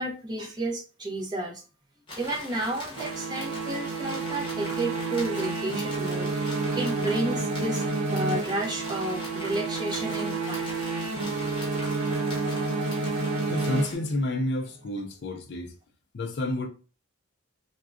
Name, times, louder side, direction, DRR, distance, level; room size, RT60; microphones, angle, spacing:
voice 1, 0.0-1.6 2.2-7.8 8.1-10.7, right 1 dB, 20° right, 0.6 m, -31 dB
sound 1, 2.1-14.0, left 1 dB, 20° left, 0.8 m, -41 dB
sound 2, 3.0-14.4, right 3 dB, 85° right, 0.5 m, -30 dB
voice 2, 13.5-15.8 16.1-16.7, left 1 dB, 50° left, 0.4 m, -30 dB
3.5 x 2.2 x 2.4 m
head